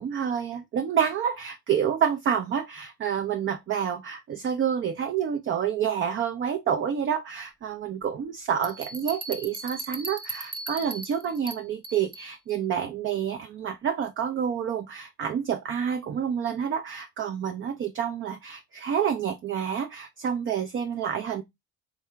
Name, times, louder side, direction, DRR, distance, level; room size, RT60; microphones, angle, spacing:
voice 1, 0.0-21.4, right 8 dB, 35° right, 0.5 m, -28 dB
sound 1, 8.6-12.3, right 2 dB, 15° right, 1.0 m, -38 dB
3.5 x 2.2 x 3.3 m
hypercardioid pair, 55°, 34 cm